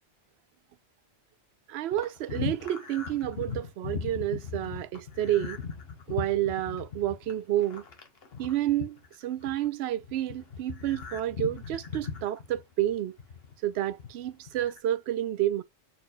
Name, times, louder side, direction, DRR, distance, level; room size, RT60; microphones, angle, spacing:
voice 1, 1.7-5.6 6.1-7.8 8.4-13.2 13.6-15.6, right 13 dB, 70° right, 0.8 m, -30 dB
sound 1, 1.9-9.7 10.0-13.5 13.9-14.8, left 6 dB, 60° left, 1.3 m, -38 dB
4.5 x 4.3 x 2.4 m
omnidirectional pair, 1.2 m